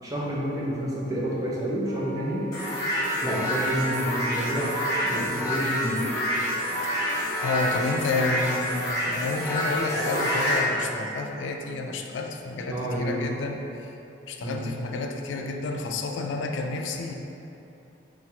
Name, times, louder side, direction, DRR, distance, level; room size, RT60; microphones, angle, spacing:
voice 1, 0.0-2.5 3.2-4.7 5.0-6.1 12.7-13.1 14.4-14.7, right 1 dB, 20° right, -6 dB, 0.6 m, -29 dB
Wind instrument woodwind instrument, 1.8-6.0, right 1 dB, 85° right, 0.6 m, -40 dB
sound 1, 2.5-10.6, equal, 20° left, 0.9 m, -27 dB
voice 2, 7.4-13.9 14.3-17.1, left 3 dB, 85° left, 3 dB, 0.3 m, -30 dB
5.7 x 2.4 x 2.8 m, 2.9 s
head